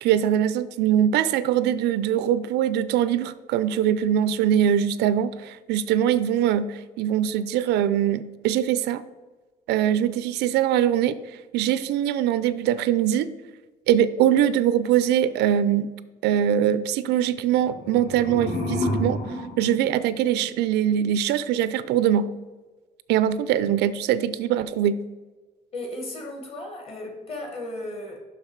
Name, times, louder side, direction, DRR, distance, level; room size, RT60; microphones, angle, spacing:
voice 1, 0.0-9.0 9.7-11.2 11.5-13.3 13.9-15.9 16.2-19.2 19.6-22.3 23.1-25.0, right 10 dB, 90° right, 15 dB, 0.4 m, -22 dB
sound 1, 17.5-20.7, left 1 dB, 65° left, 2.4 m, -30 dB
voice 2, 25.7-28.2, left 1 dB, 35° left, 3 dB, 1.4 m, -35 dB
5.8 x 5.8 x 4.5 m, 1.3 s
cardioid pair, 175°, 17 cm